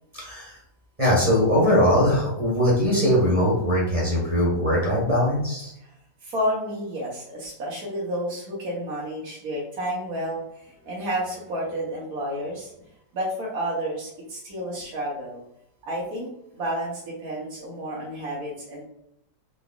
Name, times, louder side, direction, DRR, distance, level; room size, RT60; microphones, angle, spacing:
voice 1, 0.1-0.6 1.0-5.7, equal, 20° right, -5 dB, 1.5 m, -21 dB
voice 2, 6.2-12.7 13.1-15.4 15.8-16.3 16.5-18.8, equal, 60° right, -5 dB, 1.3 m, -30 dB
3.9 x 3.4 x 2.3 m, 0.77 s
omnidirectional pair, 1.9 m